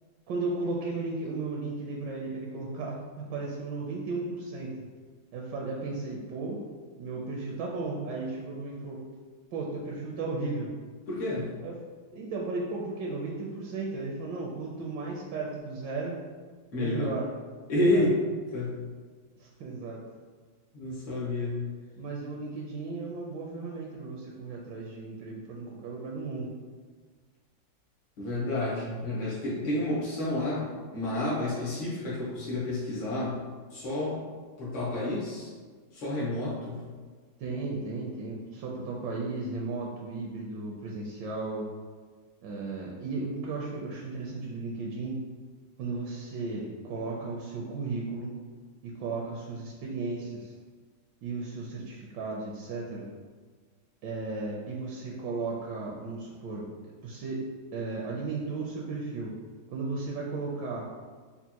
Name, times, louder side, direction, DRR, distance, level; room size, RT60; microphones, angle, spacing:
voice 1, 0.3-4.7 5.3-6.6 7.0-9.0 9.5-10.7 11.6-11.7 12.1-16.2 16.8-17.3 17.9-18.1 19.4-20.0 22.0-26.5 37.4-41.7 42.4-45.2 45.8-48.3 48.8-50.5 51.2-53.1 54.0-56.7 57.0-57.4 57.7-59.3 59.7-60.9, right 3 dB, 75° right, -2 dB, 1.2 m, -35 dB
voice 2, 11.1-11.5 16.7-17.1 17.7-18.2 18.5-18.8 20.7-21.6 28.2-33.4 33.7-34.2 34.6-35.5 35.9-36.8, left 1 dB, 85° left, -7 dB, 2.1 m, -30 dB
5.4 x 2.4 x 2.8 m, 1.5 s
omnidirectional pair, 2.1 m